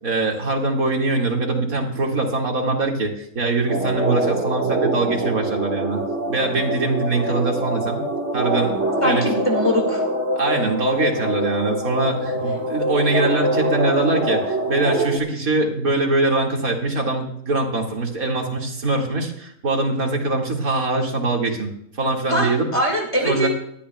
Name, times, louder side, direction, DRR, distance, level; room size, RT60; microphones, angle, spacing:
voice 1, 0.0-6.0 6.3-8.0 8.3-9.3 10.4-21.7 22.0-22.7 23.2-23.5, right 2 dB, 80° right, 0 dB, 2.7 m, -22 dB
sound 1, 3.7-15.2, right 1 dB, 55° right, 2.1 m, -24 dB
voice 2, 9.0-10.0 22.3-23.5, equal, 20° left, 0 dB, 2.3 m, -22 dB
20.0 x 13.0 x 2.3 m, 0.73 s
omnidirectional pair, 1.5 m